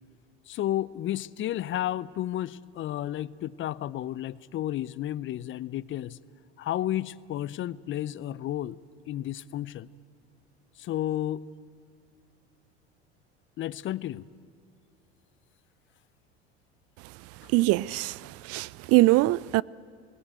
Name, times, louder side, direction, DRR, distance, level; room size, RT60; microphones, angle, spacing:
voice 1, 0.5-6.2 6.6-8.8 9.1-9.9 10.8-11.4 13.6-14.3, left 13 dB, 40° left, 0.6 m, -32 dB
voice 2, 17.5-19.6, right 20 dB, 50° right, 0.4 m, -23 dB
19.5 x 17.0 x 9.2 m
hypercardioid pair, 75°, 32 cm